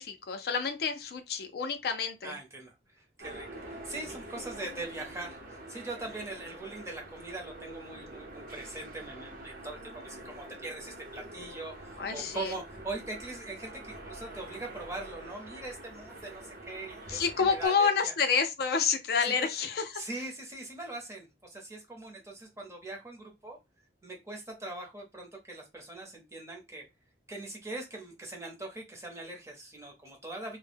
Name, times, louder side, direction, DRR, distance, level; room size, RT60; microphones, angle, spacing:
voice 1, 0.0-2.3 12.0-12.5 17.1-19.8, left 5 dB, 55° left, 0.4 m, -29 dB
voice 2, 2.2-18.1 19.2-19.5 19.9-23.6 24.0-26.8 27.3-30.6, right 2 dB, 15° right, 0.6 m, -41 dB
sound 1, 3.2-17.7, right 1 dB, 50° right, 0.7 m, -46 dB
2.1 x 2.0 x 3.3 m
head